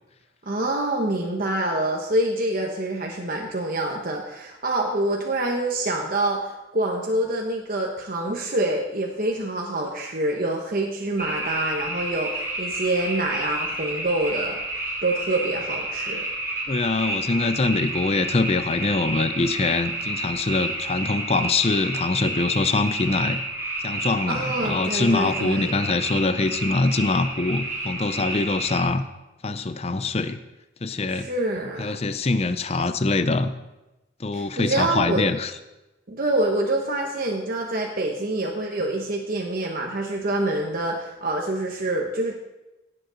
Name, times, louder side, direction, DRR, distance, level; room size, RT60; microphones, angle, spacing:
voice 1, 0.5-14.6 15.0-16.2 24.3-25.8 31.1-31.9 34.3-35.3 36.1-42.3, right 2 dB, 45° right, 0 dB, 1.0 m, -26 dB
sound 1, 11.2-28.8, right 1 dB, 15° right, 2.5 m, -30 dB
voice 2, 16.7-23.4 23.8-29.1 29.4-30.4 30.8-31.3 31.8-33.5 34.2-35.5, left 3 dB, 30° left, 10 dB, 0.5 m, -24 dB
16.5 x 7.9 x 3.9 m, 1.0 s
head